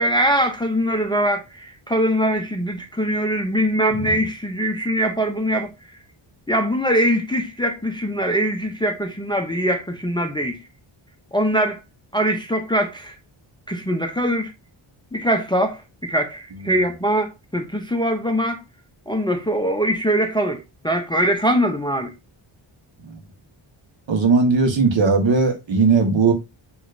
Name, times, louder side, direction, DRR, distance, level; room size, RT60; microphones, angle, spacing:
voice 1, 0.0-5.7 6.5-10.6 11.3-11.8 12.1-13.2 13.7-14.5 15.1-18.6 19.1-22.1, equal, 10° left, 0.5 m, -22 dB
voice 2, 24.1-26.3, right 4 dB, 65° right, 1.3 m, -17 dB
6.7 x 3.0 x 2.5 m
wide cardioid pair, 170°, 48 cm